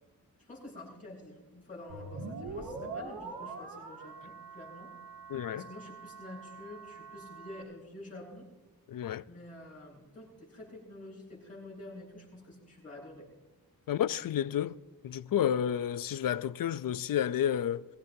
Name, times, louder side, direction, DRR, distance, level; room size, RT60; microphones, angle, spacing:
voice 1, 0.4-4.9 5.5-8.5 9.3-13.3, left 1 dB, 20° left, 6.2 m, -48 dB
sound 1, 1.9-7.6, right 3 dB, 80° right, 2.3 m, -44 dB
voice 2, 5.3-5.6 8.9-9.2 13.9-14.8 15.0-17.9, left 10 dB, 70° left, 0.5 m, -30 dB
22.0 x 16.0 x 2.7 m
wide cardioid pair, 140°, 36 cm